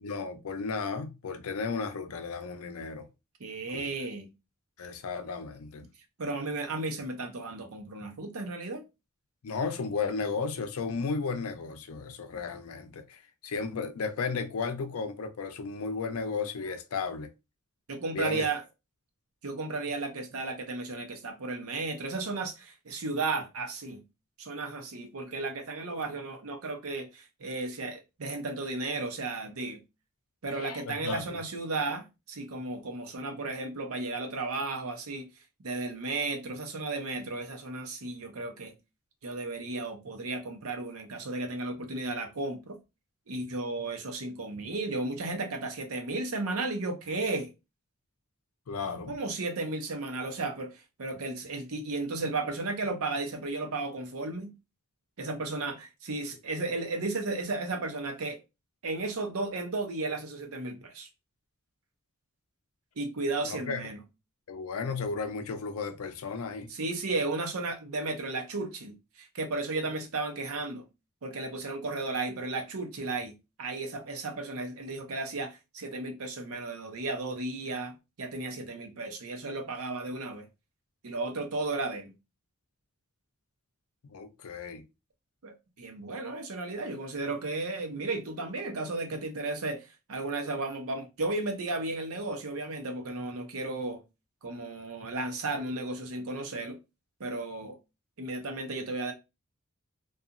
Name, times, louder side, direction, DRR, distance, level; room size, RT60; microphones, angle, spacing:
voice 1, 0.0-3.1 3.7-3.8 4.8-5.8 9.4-17.3 18.1-18.5 30.6-31.2 48.7-49.1 63.4-63.8 64.5-66.7 84.1-84.8, left 4 dB, 75° left, 0.5 m, -34 dB
voice 2, 3.4-4.3 6.2-8.8 17.9-18.6 19.4-24.0 24.4-29.8 30.4-35.3 35.6-38.7 39.2-42.8 43.3-47.5 49.1-54.5 55.2-58.4 58.8-61.1 63.0-64.0 66.7-70.9 71.2-80.5 81.0-82.1 85.4-94.0 94.4-96.8 97.2-97.8 98.2-99.1, right 3 dB, 75° right, 0.7 m, -34 dB
2.8 x 2.3 x 2.4 m
head